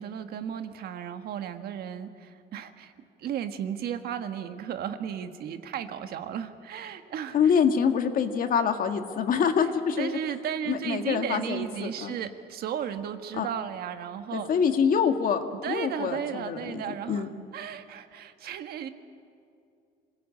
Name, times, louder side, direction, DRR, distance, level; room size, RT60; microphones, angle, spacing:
voice 1, 0.0-2.9 3.2-7.5 9.6-14.5 15.6-17.3 17.5-18.9, right 9 dB, 65° right, 8 dB, 1.6 m, -35 dB
voice 2, 7.3-10.2 10.7-12.1 13.4-13.5 14.3-15.4 15.7-16.7 17.1-17.3, left 7 dB, 55° left, 6 dB, 1.9 m, -25 dB
26.0 x 18.5 x 8.6 m, 2.4 s
cardioid pair, 110°, 17 cm